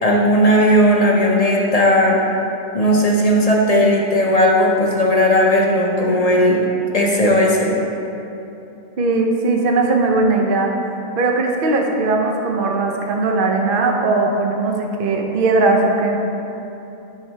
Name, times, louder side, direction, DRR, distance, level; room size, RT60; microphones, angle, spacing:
voice 1, 0.0-2.2 2.7-6.6 6.9-7.7, equal, 40° left, -2 dB, 0.6 m, -15 dB
voice 2, 9.0-10.7 11.2-16.2, right 3 dB, 55° right, 2 dB, 0.6 m, -18 dB
8.9 x 5.8 x 3.2 m, 2.9 s
omnidirectional pair, 1.4 m